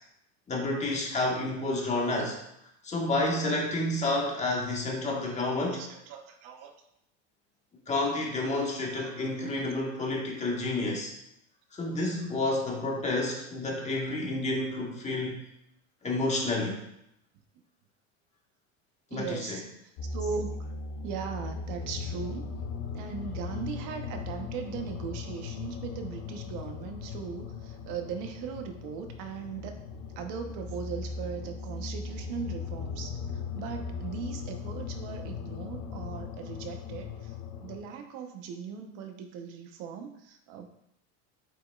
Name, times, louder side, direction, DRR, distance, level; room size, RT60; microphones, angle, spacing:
voice 1, 0.5-2.4 2.8-5.8 7.9-11.1 11.7-15.4 16.0-16.8 19.1-19.6, left 2 dB, 20° left, -1 dB, 1.6 m, -30 dB
voice 2, 5.6-6.7 8.9-9.7 11.8-12.0 14.9-15.1 19.1-20.5 21.0-22.6 22.9-29.8 30.1-40.7, right 6 dB, 60° right, 5 dB, 1.1 m, -39 dB
sound 1, 20.0-37.8, left 5 dB, 55° left, 0.8 m, -38 dB
8.0 x 5.3 x 2.5 m, 0.78 s
supercardioid pair, 130°, 35 cm